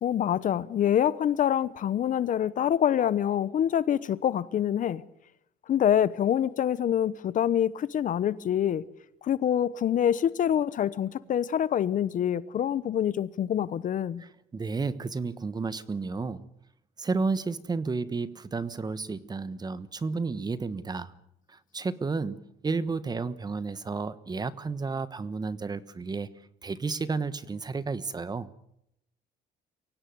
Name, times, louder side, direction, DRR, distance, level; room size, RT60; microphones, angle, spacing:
voice 1, 0.0-5.0 5.7-8.8 9.2-14.2, left 10 dB, 50° left, 1.0 m, -26 dB
voice 2, 14.2-16.5 17.0-21.1 21.5-26.3 26.6-28.5, right 4 dB, 25° right, 1.2 m, -32 dB
24.0 x 17.5 x 9.4 m
cardioid pair, 110°, 17 cm